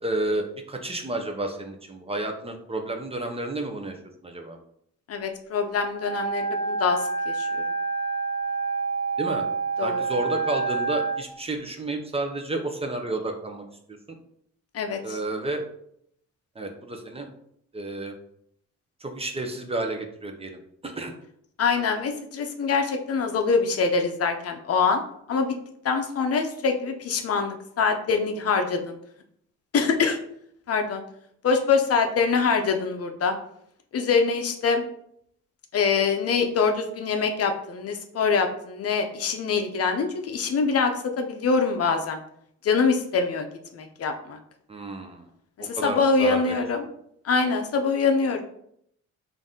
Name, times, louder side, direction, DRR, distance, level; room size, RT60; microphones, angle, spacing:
voice 1, 0.0-3.9 4.2-4.6 9.2-9.4 9.8-14.2 15.0-15.6 16.6-17.3 17.7-18.1 19.0-21.1 44.7-45.2 45.6-46.6, right 2 dB, 20° right, 4 dB, 0.6 m, -31 dB
voice 2, 5.1-7.0 7.3-7.6 9.8-10.0 14.7-15.2 21.6-25.5 25.8-29.0 29.7-30.2 30.7-31.0 31.4-33.3 33.9-34.8 35.7-42.2 42.6-44.4 45.6-46.8 47.2-48.4, left 5 dB, 50° left, 5 dB, 0.6 m, -24 dB
Wind instrument woodwind instrument, 5.9-11.2, right 4 dB, 15° left, 1.0 m, -28 dB
3.9 x 2.6 x 3.6 m, 0.70 s
cardioid pair, 90°, 30 cm